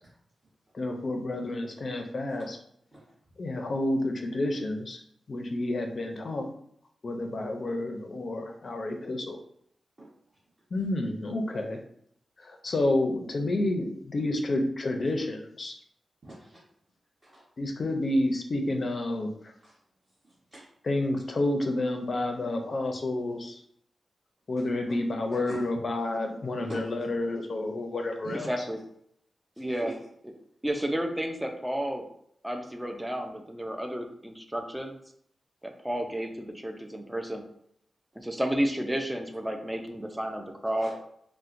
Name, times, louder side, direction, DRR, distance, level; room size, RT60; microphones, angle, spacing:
voice 1, 0.7-2.6 3.4-5.0 5.3-6.5 7.0-9.4 10.7-11.8 12.4-15.8 17.6-19.3 20.9-23.6 24.5-28.5, left 1 dB, 45° left, 3 dB, 0.5 m, -29 dB
voice 2, 16.2-16.6 17.2-17.4 19.6-19.8 20.2-20.7 25.4-25.6 26.5-26.9 28.2-28.6 29.8-30.0 40.8-40.9, right 1 dB, 35° right, -10 dB, 1.0 m, -43 dB
voice 3, 28.3-28.8 29.6-30.0 30.6-32.1 32.4-35.0 35.6-37.4 38.2-40.9, equal, 10° right, 4 dB, 0.4 m, -32 dB
4.2 x 2.1 x 2.5 m, 0.68 s
wide cardioid pair, 120°, 0 cm